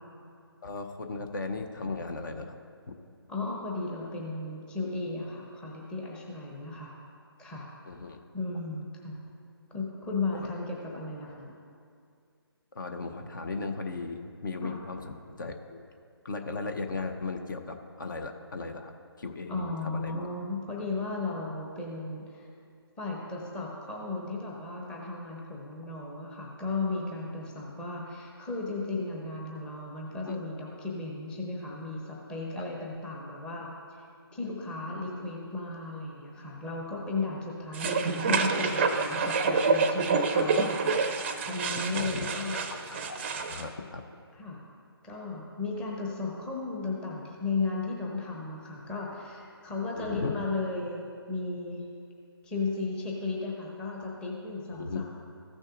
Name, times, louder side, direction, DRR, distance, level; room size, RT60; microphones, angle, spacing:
voice 1, 0.6-2.6 2.9-3.0 7.8-8.2 10.3-10.5 12.7-15.8 16.2-18.9 19.2-20.3 30.2-30.4 41.9-42.3 43.0-43.2 43.5-44.0 49.9-50.5 54.7-55.0, left 3 dB, 50° left, 5 dB, 0.7 m, -36 dB
voice 2, 3.3-7.0 7.4-7.7 8.3-9.2 9.7-11.6 14.6-14.7 19.5-22.5 23.0-34.0 34.3-41.0 41.5-42.6 44.3-44.6 45.0-51.8 52.4-55.0, left 3 dB, 5° left, -2 dB, 0.8 m, -35 dB
sound 1, 37.7-43.6, right 4 dB, 30° right, 0.5 m, -27 dB
14.5 x 6.3 x 2.5 m, 2.4 s
figure-of-eight pair, 155°, 13 cm